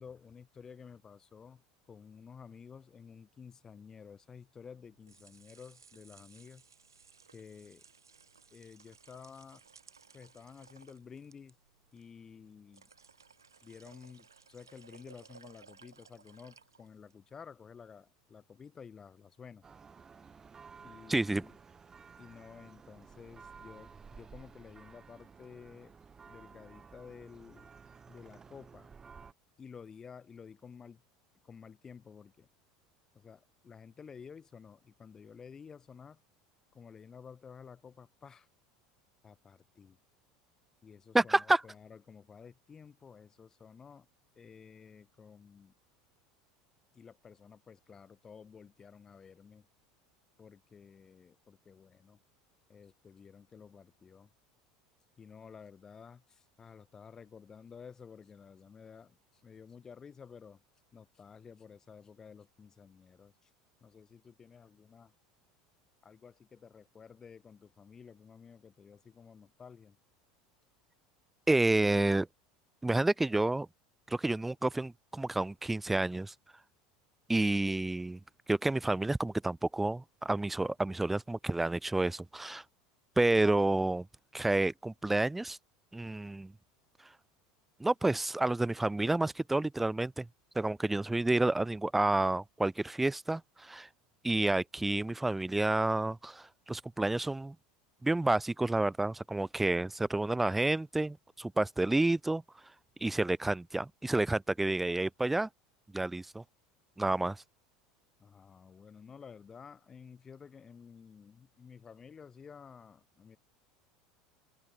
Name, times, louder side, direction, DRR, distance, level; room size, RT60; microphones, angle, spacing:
voice 1, 0.0-6.6 7.3-7.8 8.5-9.6 10.1-11.6 11.9-12.9 13.6-19.7 20.8-21.6 22.2-25.9 26.2-27.7 28.1-28.9 29.6-31.0 31.4-32.5 33.1-36.2 36.7-38.5 39.2-40.0 40.8-44.1 44.3-45.7 46.9-49.7 50.4-52.2 52.7-54.3 55.2-60.6 60.9-63.5 63.8-65.1 66.0-70.0 99.6-99.8 108.2-113.4, left 6 dB, 30° left, 3.0 m, -52 dB
sound 1, 4.9-17.2, right 5 dB, 90° right, 3.0 m, -60 dB
Church bell, 19.6-29.3, right 5 dB, 25° right, 3.0 m, -54 dB
voice 2, 21.1-21.4 41.1-41.6 71.5-72.3 72.8-73.7 74.1-76.3 77.3-78.2 78.5-82.6 83.2-84.1 84.3-85.6 85.9-86.5 87.8-90.3 90.6-93.9 94.2-97.6 98.0-102.4 103.0-105.5 105.9-106.4 107.0-107.4, right 2 dB, 10° right, 0.3 m, -29 dB
open air
hypercardioid pair, 75°, 2 cm